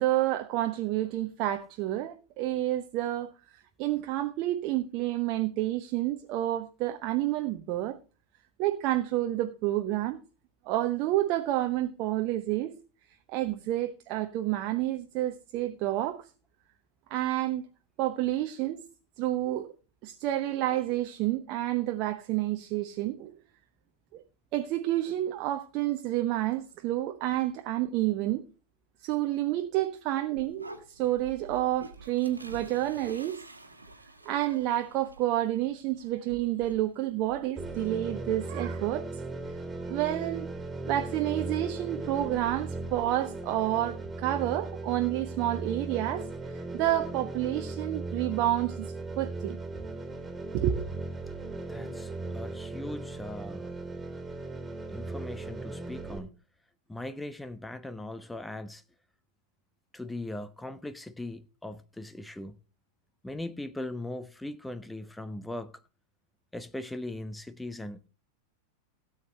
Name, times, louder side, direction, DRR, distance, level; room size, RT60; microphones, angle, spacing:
voice 1, 0.0-8.0 8.6-10.2 10.7-12.7 13.3-16.2 17.1-17.7 18.0-18.8 19.2-19.7 20.0-23.3 24.1-24.2 24.5-28.4 29.0-33.4 34.2-39.0 39.8-40.5 40.8-49.6 50.5-50.9, right 14 dB, 40° right, 0.9 m, -29 dB
sound 1, 30.4-38.6, right 2 dB, 80° right, 1.6 m, -49 dB
sound 2, 37.6-56.2, right 3 dB, 10° right, 3.3 m, -37 dB
voice 2, 51.7-53.7 54.9-56.3 56.9-58.8 59.9-62.6 63.2-65.7 66.5-68.1, left 1 dB, 5° left, 0.7 m, -39 dB
17.0 x 8.3 x 3.2 m
figure-of-eight pair, 90°, 0 cm